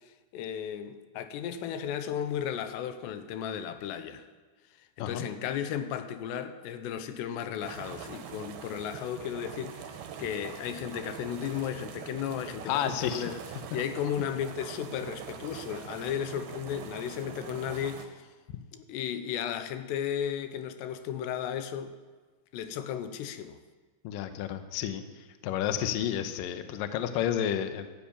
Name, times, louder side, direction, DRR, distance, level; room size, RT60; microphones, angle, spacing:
voice 1, 0.3-4.2 4.8-13.4 13.7-18.2 18.7-22.0 22.5-23.6, left 9 dB, 90° left, 3.0 m, -34 dB
sound 1, 7.6-18.1, right 8 dB, 70° right, 3.0 m, -44 dB
voice 2, 12.7-13.2 24.0-25.0 25.4-27.9, left 10 dB, 75° left, 2.2 m, -30 dB
13.0 x 11.0 x 8.9 m
omnidirectional pair, 4.8 m